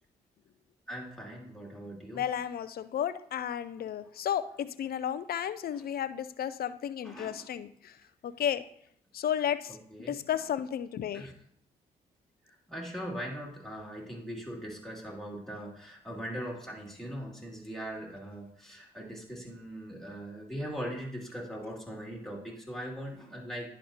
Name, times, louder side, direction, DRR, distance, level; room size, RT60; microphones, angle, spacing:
voice 1, 0.9-2.2 3.8-3.9 7.0-7.5 9.9-10.1 11.1-11.3 12.5-23.7, equal, ahead, -3 dB, 2.7 m, -40 dB
voice 2, 2.1-8.0 8.2-8.6 9.1-9.8 10.1-11.3, left 9 dB, 60° left, 13 dB, 0.5 m, -33 dB
10.5 x 5.1 x 2.9 m, 0.67 s
supercardioid pair, 50°, 17 cm